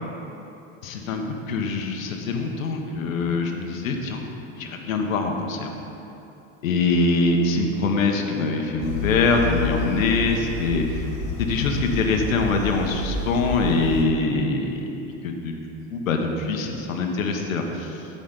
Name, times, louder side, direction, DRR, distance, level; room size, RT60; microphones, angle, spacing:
voice 1, 0.8-4.3 4.6-5.7 6.6-11.1 11.4-14.9 15.2-15.6 15.9-18.1, left 3 dB, 90° left, 3 dB, 1.2 m, -24 dB
sound 1, 8.8-14.0, left 4 dB, 55° left, 2.2 m, -30 dB
15.5 x 5.3 x 3.9 m, 3.0 s
hypercardioid pair, 100°, 39 cm